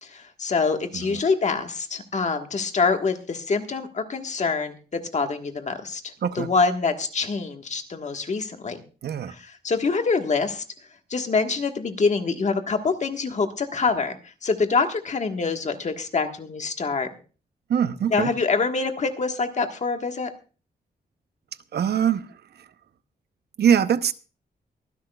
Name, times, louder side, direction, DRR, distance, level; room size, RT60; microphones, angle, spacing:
voice 1, 0.0-8.8 9.3-10.6 11.1-17.1 18.1-20.3, left 4 dB, 45° left, 6 dB, 1.5 m, -25 dB
voice 2, 9.0-9.3 17.7-18.3 21.7-22.2 23.6-24.1, right 8 dB, 80° right, 12 dB, 0.8 m, -22 dB
23.5 x 11.0 x 2.3 m, 0.36 s
wide cardioid pair, 130°, 17 cm